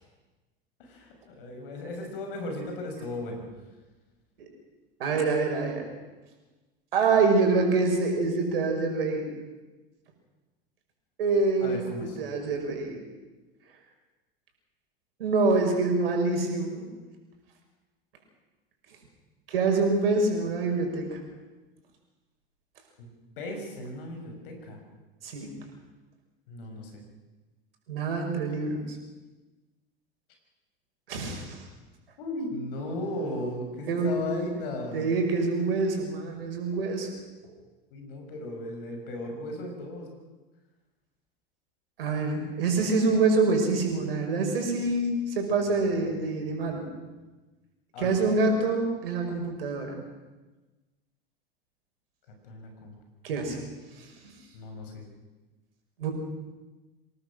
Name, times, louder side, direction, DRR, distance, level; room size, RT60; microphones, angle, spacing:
voice 1, 0.8-3.4 11.6-12.2 23.0-23.1 23.4-24.8 26.5-27.0 32.2-35.0 37.9-40.1 47.9-48.2 52.4-52.9 54.5-55.0, left 1 dB, 65° left, 3 dB, 6.5 m, -36 dB
voice 2, 5.0-5.9 6.9-9.3 11.2-13.0 15.2-16.9 19.5-21.2 25.2-25.6 27.9-29.0 31.1-31.6 33.9-34.2 34.9-37.1 42.0-46.9 48.0-49.9 53.2-53.6 54.0-54.1 56.0-56.1, right 3 dB, 75° right, 3 dB, 5.7 m, -26 dB
26.0 x 18.5 x 6.5 m, 1.2 s
hypercardioid pair, 80°, 29 cm